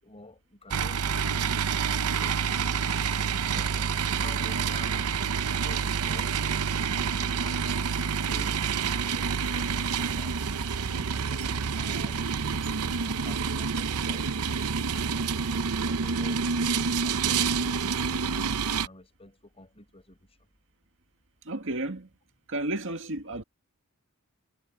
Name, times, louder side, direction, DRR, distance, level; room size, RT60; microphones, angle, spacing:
voice 1, 0.0-3.9 4.2-5.1 5.5-6.4 6.9-10.3 10.9-12.3 12.6-14.5 15.1-20.4, left 2 dB, 25° left, 5.6 m, -50 dB
sound 1, 0.7-18.9, right 6 dB, 80° right, 0.8 m, -28 dB
voice 2, 21.5-22.1 22.5-23.4, right 2 dB, 60° right, 2.0 m, -32 dB
head